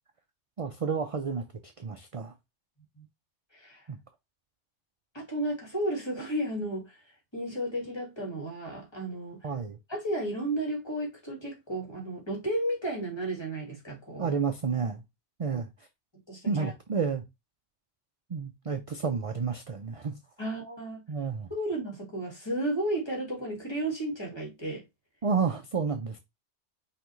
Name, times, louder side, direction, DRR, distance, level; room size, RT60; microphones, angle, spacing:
voice 1, 0.6-2.3 3.9-4.0 9.4-9.8 14.2-15.0 15.4-15.7 16.5-17.2 18.3-20.1 21.1-21.5 25.2-26.2, right 5 dB, 45° right, 0.4 m, -30 dB
voice 2, 3.5-3.8 5.1-7.0 7.3-9.4 9.9-14.4 16.3-16.7 20.4-21.0 21.5-24.8, right 1 dB, 20° left, 1.8 m, -33 dB
5.6 x 3.0 x 3.0 m
omnidirectional pair, 1.2 m